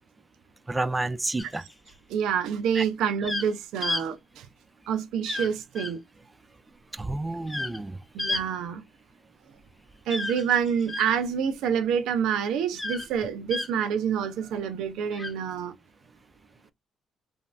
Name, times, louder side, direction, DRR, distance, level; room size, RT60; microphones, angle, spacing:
voice 1, 0.7-1.6 2.7-2.9 6.9-8.0, right 2 dB, 15° right, 0.4 m, -30 dB
sound 1, 1.4-1.9 3.2-3.5 3.8-4.0 5.2-5.5 5.7-5.9 7.5-7.8 8.2-8.4 10.1-11.1 12.7-13.1 13.5-13.7 15.1-15.3, left 2 dB, 15° left, 0.8 m, -31 dB
voice 2, 2.1-4.5 4.9-6.0 8.1-8.8 10.1-15.7, right 7 dB, 90° right, 0.5 m, -27 dB
3.2 x 2.6 x 2.2 m
cardioid pair, 90°, 0 cm